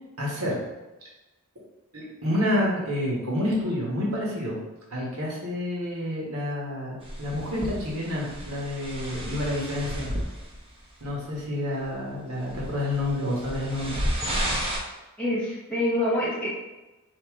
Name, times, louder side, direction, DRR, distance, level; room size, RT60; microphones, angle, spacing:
voice 1, 0.2-0.6 1.9-4.6 4.9-10.1 11.0-14.0, left 1 dB, 85° right, -4 dB, 1.3 m, -29 dB
sound 1, 7.0-10.7 11.0-11.4 11.9-12.0 12.5-14.8, equal, 25° right, 0.7 m, -32 dB
voice 2, 15.2-16.5, left 1 dB, 5° left, -7 dB, 1.0 m, -26 dB
4.9 x 2.8 x 3.6 m, 1.1 s
head